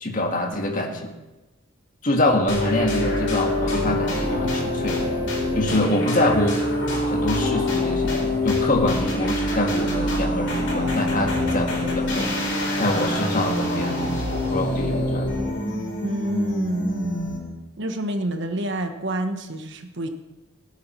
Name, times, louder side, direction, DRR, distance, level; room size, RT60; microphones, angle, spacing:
voice 1, 0.0-1.1 2.0-5.1 5.5-6.6 7.1-8.1 8.4-12.3 12.8-15.3, left 1 dB, 40° left, 2 dB, 1.7 m, -25 dB
sound 1, 2.5-17.6, left 1 dB, 60° left, 3.9 m, -25 dB
voice 2, 16.0-17.2 17.8-20.1, right 1 dB, 55° right, 6 dB, 1.2 m, -28 dB
17.0 x 7.3 x 6.2 m, 1.1 s
head